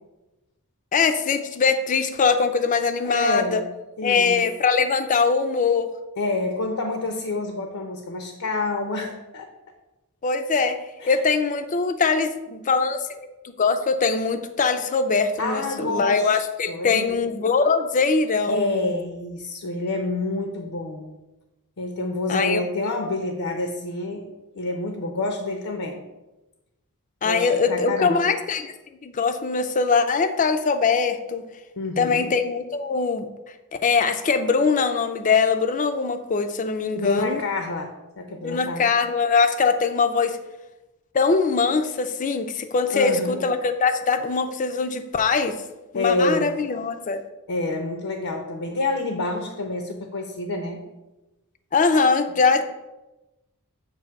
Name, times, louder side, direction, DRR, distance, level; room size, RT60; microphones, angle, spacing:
voice 1, 0.9-3.6 4.0-5.9 10.2-10.8 11.1-18.8 22.3-22.6 27.2-28.7 29.0-31.4 32.0-33.3 33.8-37.4 38.4-40.4 41.1-45.6 45.9-47.2 51.7-52.6, left 4 dB, 35° left, 8 dB, 0.4 m, -22 dB
voice 2, 3.0-3.6 4.0-4.4 6.2-9.5 11.0-11.1 15.4-16.4 16.7-17.2 18.5-21.2 21.8-24.3 24.5-26.0 27.2-28.2 31.8-32.3 36.9-38.9 42.9-43.4 45.9-46.6 47.5-50.8, left 2 dB, 75° left, 5 dB, 0.7 m, -28 dB
7.4 x 2.7 x 5.7 m, 1.0 s
head